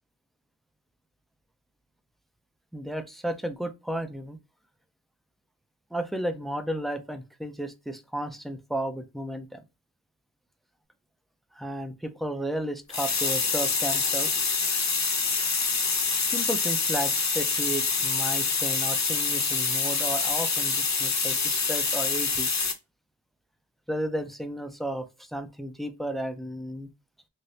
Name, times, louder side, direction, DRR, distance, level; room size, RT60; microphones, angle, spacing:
voice 1, 2.7-4.4 5.9-9.6 11.5-14.4 16.3-22.5 23.9-26.9, right 1 dB, ahead, 0.4 m, -33 dB
sound 1, 12.9-22.7, left 4 dB, 40° left, 0.7 m, -26 dB
3.3 x 2.5 x 2.7 m
wide cardioid pair, 55°, 45 cm